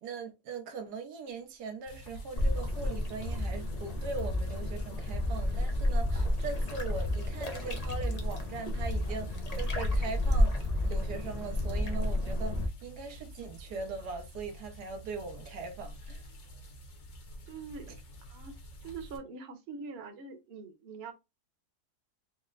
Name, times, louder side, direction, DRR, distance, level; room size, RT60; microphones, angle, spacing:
voice 1, 0.0-16.2, right 4 dB, 85° right, 1.4 m, -40 dB
sound 1, 1.9-19.2, equal, 50° left, 1.2 m, -49 dB
sound 2, 2.4-12.7, left 1 dB, 75° left, 0.3 m, -31 dB
sound 3, 2.4-15.5, left 1 dB, 15° left, 0.7 m, -51 dB
voice 2, 17.5-17.9 18.2-18.6 18.8-21.1, right 4 dB, 50° right, 1.0 m, -43 dB
4.2 x 2.1 x 3.8 m
omnidirectional pair, 1.7 m